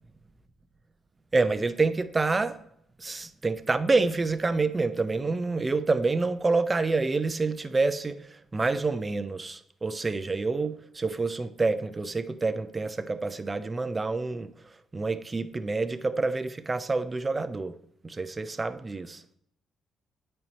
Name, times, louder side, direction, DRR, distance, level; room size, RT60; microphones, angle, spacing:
voice 1, 1.3-2.6 3.0-8.2 8.5-14.5 14.9-17.7 18.0-19.2, right 3 dB, 25° right, 0.6 m, -27 dB
8.6 x 4.4 x 4.1 m
cardioid pair, 90°, 0 cm